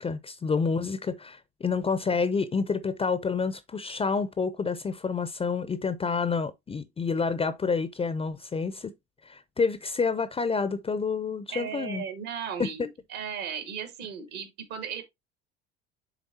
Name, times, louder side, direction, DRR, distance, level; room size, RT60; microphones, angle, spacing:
voice 1, 0.0-8.9 9.3-12.0 12.6-12.7, left 5 dB, 15° left, 0.5 m, -28 dB
voice 2, 11.5-15.0, right 7 dB, 65° right, 1.8 m, -36 dB
9.7 x 3.7 x 2.7 m
hypercardioid pair, 70°, 33 cm